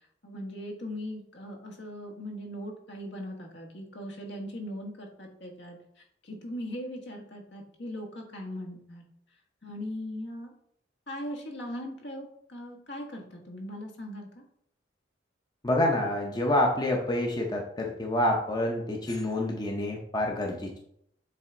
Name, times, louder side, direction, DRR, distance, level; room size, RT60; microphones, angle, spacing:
voice 1, 0.2-5.8 6.2-9.0 9.6-10.5 11.1-14.4, equal, 65° left, 1 dB, 1.3 m, -39 dB
voice 2, 15.6-20.8, left 1 dB, 20° left, 0 dB, 0.7 m, -27 dB
7.5 x 3.4 x 3.8 m, 0.71 s
head